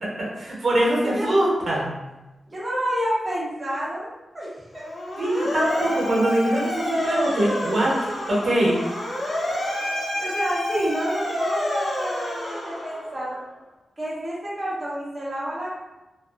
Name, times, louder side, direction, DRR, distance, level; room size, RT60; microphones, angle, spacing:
voice 1, 0.0-1.9 5.2-8.0 8.3-8.8, right 1 dB, 65° right, -5 dB, 0.8 m, -22 dB
voice 2, 2.5-4.1 4.3-4.8 10.1-13.4 14.0-15.7, equal, 25° right, -7 dB, 0.7 m, -29 dB
Motor vehicle (road) / Siren, 4.7-13.3, left 1 dB, 60° left, 0.7 m, -29 dB
2.6 x 2.4 x 2.4 m, 1.1 s
wide cardioid pair, 95°, 0 cm